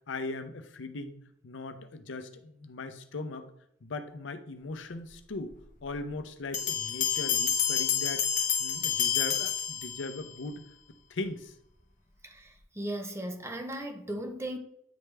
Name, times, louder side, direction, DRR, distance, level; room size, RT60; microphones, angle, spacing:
voice 1, 0.1-1.2 1.4-3.5 3.8-5.5 5.8-10.6 11.1-11.5, left 3 dB, 70° left, 0.6 m, -39 dB
sound 1, 6.5-10.3, left 8 dB, 45° left, 0.8 m, -29 dB
voice 2, 12.2-14.6, right 1 dB, 15° right, 0.7 m, -37 dB
9.3 x 3.3 x 3.3 m
head